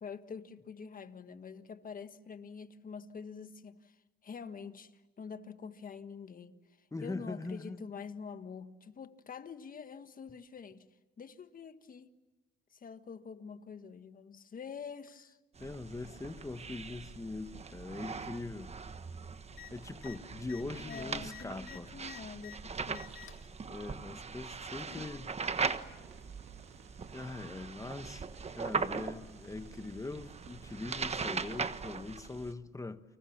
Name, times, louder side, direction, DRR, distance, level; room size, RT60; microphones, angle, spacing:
voice 1, 0.0-10.9 11.2-12.1 12.7-15.4 20.8-23.3, left 6 dB, 45° left, 1.6 m, -46 dB
voice 2, 6.9-7.8 15.6-18.7 19.7-21.9 23.7-25.3 27.1-28.3 28.6-33.0, left 3 dB, 15° left, 1.4 m, -42 dB
sound 1, 15.6-32.5, right 5 dB, 30° right, 1.3 m, -40 dB
sound 2, 19.5-19.7 20.0-20.2 20.4-22.6 22.9-23.5 24.4-25.1 26.2-26.3, left 12 dB, 80° left, 2.0 m, -51 dB
sound 3, 25.5-32.0, right 6 dB, 90° right, 2.9 m, -59 dB
29.5 x 25.5 x 7.3 m
cardioid pair, 90°, 20 cm